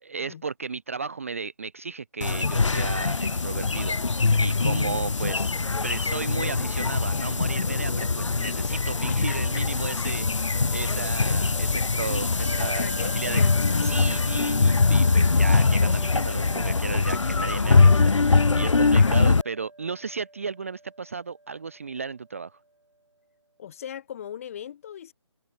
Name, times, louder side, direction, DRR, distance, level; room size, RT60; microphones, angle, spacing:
voice 1, 0.0-4.0 4.4-5.6 5.8-12.9 13.1-13.4 13.8-22.6, right 5 dB, 30° right, 0.4 m, -34 dB
sound 1, 2.2-19.4, left 4 dB, 90° left, 0.5 m, -22 dB
voice 2, 4.5-5.1 9.1-9.4 12.8-13.5 18.9-19.1 23.6-25.1, left 9 dB, 30° left, 4.7 m, -39 dB
Bell, 12.4-22.4, right 2 dB, 85° right, 1.7 m, -45 dB
open air
figure-of-eight pair, 155°, 15 cm